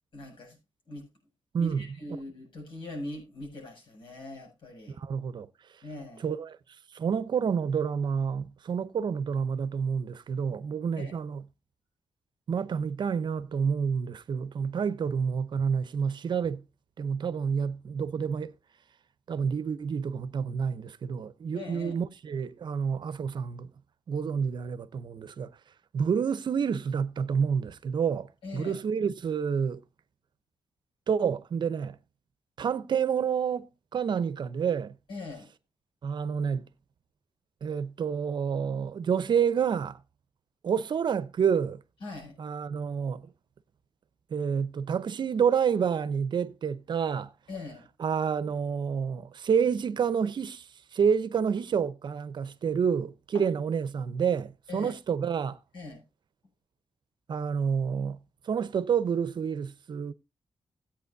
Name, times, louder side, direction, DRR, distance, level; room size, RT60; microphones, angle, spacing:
voice 1, 0.1-0.6 0.9-1.1 1.6-5.0 5.8-6.3 11.0-11.1 21.5-22.0 28.4-28.8 35.1-35.5 42.0-42.4 47.5-47.9 53.3-53.4 54.7-54.9 55.7-56.0, left 2 dB, 75° left, 7.0 m, -41 dB
voice 2, 1.5-1.9 5.0-5.5 6.2-6.6 6.9-11.4 12.5-16.6 17.0-18.5 19.3-23.7 24.1-25.5 25.9-29.8 31.1-32.0 32.6-34.9 36.0-36.7 37.6-40.0 40.6-41.8 42.4-43.3 44.3-47.3 48.0-55.6 57.3-58.2 58.4-60.1, right 7 dB, 60° right, 0.7 m, -29 dB
16.5 x 8.6 x 2.6 m
wide cardioid pair, 110°, 9 cm